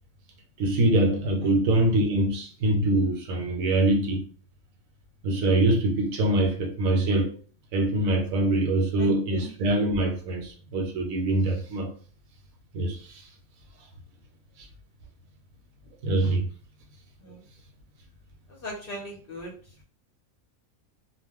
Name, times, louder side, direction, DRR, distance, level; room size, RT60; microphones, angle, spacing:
voice 1, 0.6-4.2 5.2-7.3 7.7-11.9 12.7-13.2 16.0-16.4, right 1 dB, 75° right, 1.0 m, -24 dB
voice 2, 9.0-9.5 17.2-17.4 18.6-19.5, equal, 50° left, 0.8 m, -38 dB
2.3 x 2.1 x 3.5 m
omnidirectional pair, 1.5 m